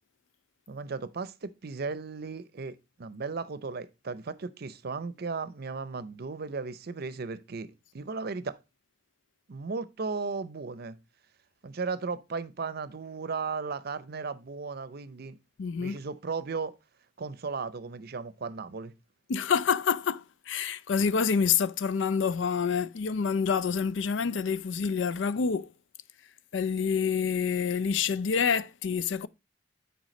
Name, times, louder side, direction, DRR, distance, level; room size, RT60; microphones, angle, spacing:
voice 1, 0.7-8.6 9.5-11.0 11.6-15.4 15.8-16.7 17.2-18.9, right 4 dB, 55° right, 0.6 m, -36 dB
voice 2, 15.6-16.0 19.3-25.7 26.5-29.3, left 6 dB, 80° left, 0.4 m, -27 dB
9.1 x 4.7 x 3.1 m
head